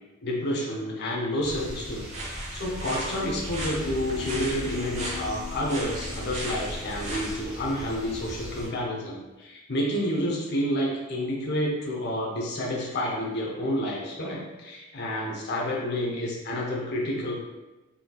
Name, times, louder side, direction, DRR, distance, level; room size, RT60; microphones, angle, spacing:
voice 1, 0.2-17.4, left 1 dB, 55° left, -3 dB, 0.8 m, -29 dB
sound 1, 1.4-8.7, equal, 5° right, 1.2 m, -39 dB
sound 2, 2.1-7.3, right 1 dB, 35° right, 0.9 m, -37 dB
sound 3, 3.3-9.2, left 6 dB, 85° left, 0.4 m, -42 dB
4.3 x 3.9 x 2.3 m, 1.1 s
head